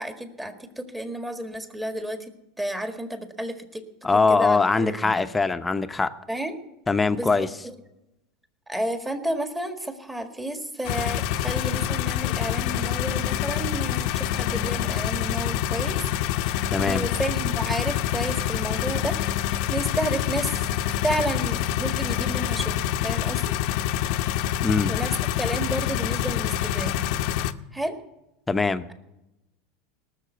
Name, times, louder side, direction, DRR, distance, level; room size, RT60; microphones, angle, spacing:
voice 1, 0.0-3.8 4.1-5.3 6.3-6.6 7.1-7.7 8.7-16.0 16.4-19.2 19.7-20.7 21.0-23.6 24.9-27.0 27.7-28.0, right 1 dB, 10° right, 6 dB, 1.8 m, -31 dB
voice 2, 4.0-6.1 6.9-7.5 16.7-17.0 24.6-24.9 28.5-28.9, left 4 dB, 15° left, 10 dB, 0.9 m, -22 dB
sound 1, 10.8-27.5, left 11 dB, 65° left, 0.7 m, -26 dB
18.5 x 6.7 x 8.0 m, 0.91 s
hypercardioid pair, 95°, 0 cm